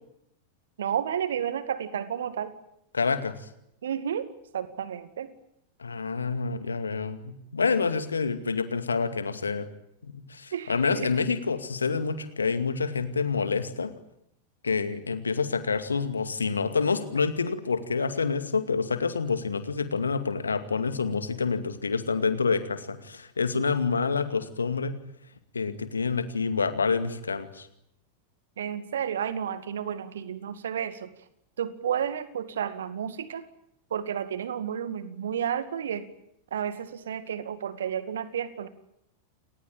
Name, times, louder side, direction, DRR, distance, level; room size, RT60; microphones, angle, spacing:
voice 1, 0.8-2.5 3.8-5.3 10.5-11.1 28.6-31.1 31.6-33.5 33.9-36.1 36.5-38.7, right 8 dB, 65° right, 13 dB, 2.1 m, -31 dB
voice 2, 2.9-3.3 5.8-9.7 10.0-13.9 14.6-24.9 25.5-27.7, left 5 dB, 75° left, 11 dB, 2.3 m, -27 dB
29.5 x 19.5 x 9.0 m, 0.78 s
figure-of-eight pair, 90°, 0 cm